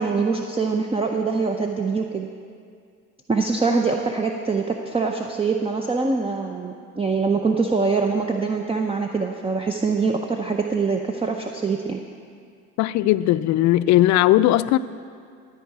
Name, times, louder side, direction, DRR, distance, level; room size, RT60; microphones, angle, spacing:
voice 1, 0.0-2.3 3.3-12.0, right 4 dB, 15° right, 3 dB, 0.6 m, -24 dB
voice 2, 12.8-14.8, left 15 dB, 55° left, 15 dB, 0.4 m, -18 dB
13.0 x 4.9 x 8.0 m, 2.2 s
supercardioid pair, 85°, 33 cm